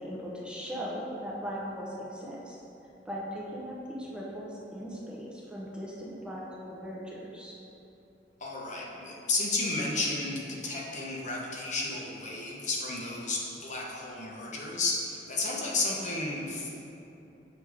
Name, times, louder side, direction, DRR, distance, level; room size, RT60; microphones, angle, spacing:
voice 1, 0.0-2.6 3.0-7.6, equal, 5° right, -5 dB, 0.7 m, -39 dB
voice 2, 8.4-16.7, left 3 dB, 45° left, -3 dB, 0.9 m, -32 dB
6.9 x 3.4 x 4.8 m, 2.8 s
head